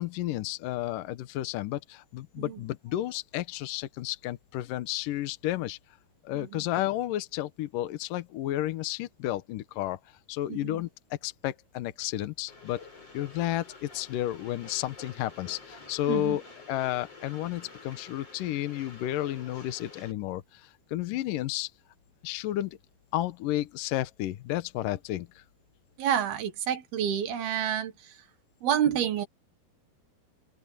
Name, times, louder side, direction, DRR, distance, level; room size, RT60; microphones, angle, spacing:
voice 1, 0.0-5.8 6.2-10.0 10.3-10.9 11.2-12.8 13.1-16.4 16.7-21.7 22.2-22.8 23.1-25.4, left 14 dB, 70° left, 2.4 m, -32 dB
voice 2, 10.5-10.8 16.1-16.4 26.0-28.2 28.6-29.3, right 9 dB, 75° right, 3.7 m, -29 dB
Train, 12.5-20.1, left 3 dB, 40° left, 9.0 m, -49 dB
open air
omnidirectional pair, 4.5 m